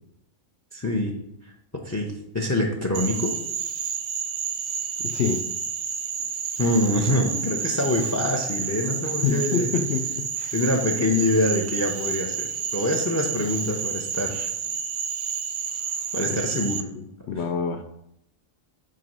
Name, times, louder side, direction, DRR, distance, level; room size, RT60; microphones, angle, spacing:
voice 1, 0.7-1.1 1.4-1.5 1.8-3.3 6.6-9.9 10.5-12.5 12.7-14.5 16.1-16.8 17.3-17.4, left 1 dB, 20° left, 2 dB, 0.5 m, -25 dB
Frog, 2.9-16.8, right 7 dB, 55° right, 0.8 m, -30 dB
voice 2, 5.0-5.4 9.2-10.5 16.3-16.4 16.9-17.8, left 6 dB, 65° left, 8 dB, 0.8 m, -27 dB
7.7 x 3.1 x 5.4 m, 0.80 s
omnidirectional pair, 1.4 m